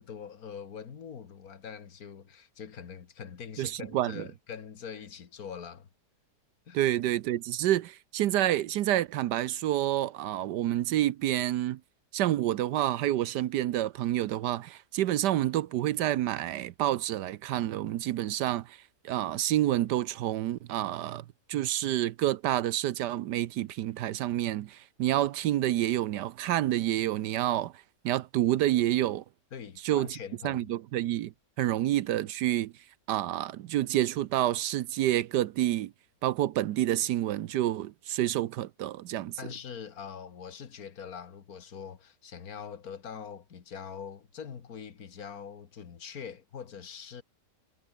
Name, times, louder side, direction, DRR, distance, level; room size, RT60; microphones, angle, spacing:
voice 1, 0.0-5.9 6.7-6.8 29.5-30.7 31.6-31.7 39.4-47.2, left 7 dB, 60° left, 2.0 m, -43 dB
voice 2, 3.6-4.2 6.7-11.8 12.1-18.8 19.0-27.7 28.0-29.2 29.8-30.2 30.4-31.3 31.6-32.7 33.1-35.9 36.2-39.4, right 13 dB, 80° right, 1.3 m, -28 dB
omnidirectional pair, 1.8 m